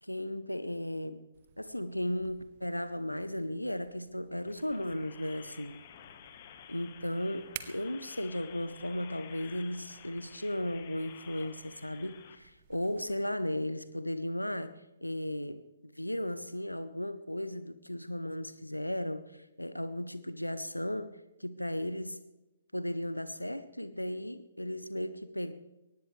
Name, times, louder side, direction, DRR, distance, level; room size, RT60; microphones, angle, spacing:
voice 1, 0.0-1.2 1.6-5.8 6.7-15.6 15.9-22.2 22.7-25.5, left 1 dB, 90° left, 13 dB, 0.7 m, -35 dB
sound 1, 1.3-13.2, right 10 dB, 40° right, 1.2 m, -54 dB
sound 2, 4.4-12.3, left 9 dB, 35° left, 1.4 m, -52 dB
22.5 x 19.0 x 3.3 m, 1.0 s
figure-of-eight pair, 130°, 0 cm